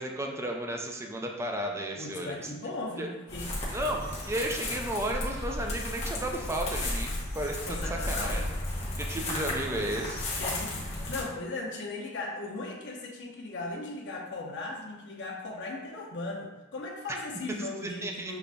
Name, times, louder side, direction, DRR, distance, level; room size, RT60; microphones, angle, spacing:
voice 1, 0.0-2.5 3.0-3.1 3.7-8.4 9.0-10.4 17.1-17.2 17.8-18.3, right 1 dB, 15° right, 2 dB, 0.4 m, -33 dB
voice 2, 2.0-3.5 7.6-8.4 10.4-18.4, left 2 dB, 60° left, -2 dB, 0.8 m, -38 dB
sound 1, 3.3-11.2, left 1 dB, 35° left, 0.9 m, -34 dB
6.7 x 2.5 x 2.3 m, 1.1 s
head